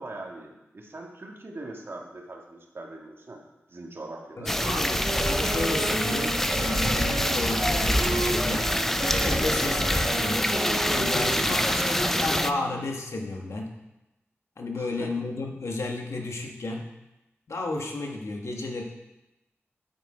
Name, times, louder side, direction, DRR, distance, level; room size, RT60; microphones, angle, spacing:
voice 1, 0.0-3.4 3.7-4.5 9.4-9.6 11.4-11.6 14.8-15.1, right 2 dB, 55° right, 0 dB, 1.8 m, -40 dB
voice 2, 4.4-8.7 9.1-10.5 10.9-11.8 12.1-13.7 14.6-16.8 17.5-18.8, left 2 dB, 80° left, 1 dB, 1.4 m, -32 dB
sound 1, 4.5-12.5, equal, 5° left, 0.5 m, -25 dB
Wind instrument woodwind instrument, 4.6-12.8, right 3 dB, 85° right, 0.6 m, -35 dB
8.2 x 8.1 x 5.0 m, 0.96 s
wide cardioid pair, 80°, 5 cm